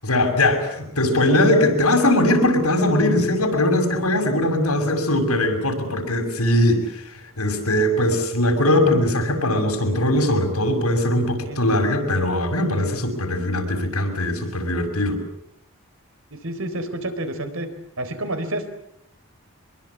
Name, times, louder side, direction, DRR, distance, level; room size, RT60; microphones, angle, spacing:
voice 1, 0.0-15.2, left 1 dB, 85° left, 4 dB, 6.6 m, -20 dB
voice 2, 16.3-17.7 18.0-18.7, right 1 dB, 70° right, 8 dB, 4.2 m, -29 dB
25.5 x 22.5 x 8.7 m, 0.75 s
head